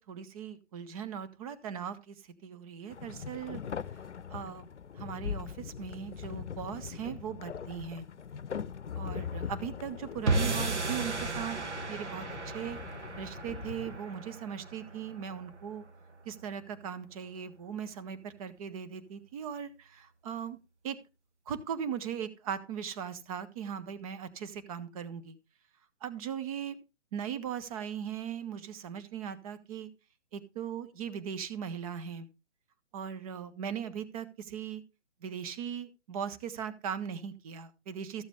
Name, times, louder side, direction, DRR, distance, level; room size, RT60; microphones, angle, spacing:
voice 1, 0.0-2.2 2.4-3.6 4.3-4.7 5.0-8.1 8.9-11.6 11.9-12.8 13.2-15.9 16.3-20.6 20.8-21.0 21.5-25.4 26.0-26.8 27.1-29.9 30.3-32.3 32.9-34.8 35.2-38.2, right 8 dB, 30° right, 13 dB, 1.1 m, -39 dB
sound 1, 2.9-14.0, left 7 dB, 85° left, 0.6 m, -41 dB
sound 2, 10.3-16.6, right 3 dB, 85° right, 1.5 m, -35 dB
13.5 x 7.2 x 3.4 m, 0.28 s
figure-of-eight pair, 135°, 34 cm